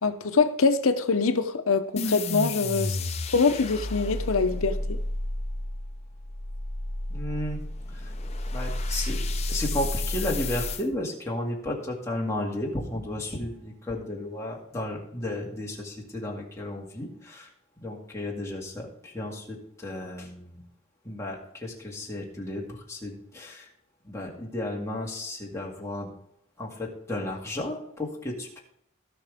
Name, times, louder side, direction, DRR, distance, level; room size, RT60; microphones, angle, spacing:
voice 1, 0.0-3.0 3.3-5.0, left 4 dB, 75° left, 0.8 m, -24 dB
sound 1, 2.0-10.8, left 2 dB, 30° left, 0.7 m, -31 dB
voice 2, 7.1-7.6 7.9-8.1 8.5-9.2 9.5-17.5 17.8-20.6 21.0-23.7 24.0-26.1 26.6-28.6, left 1 dB, 15° left, 2.2 m, -33 dB
17.5 x 5.9 x 3.5 m
head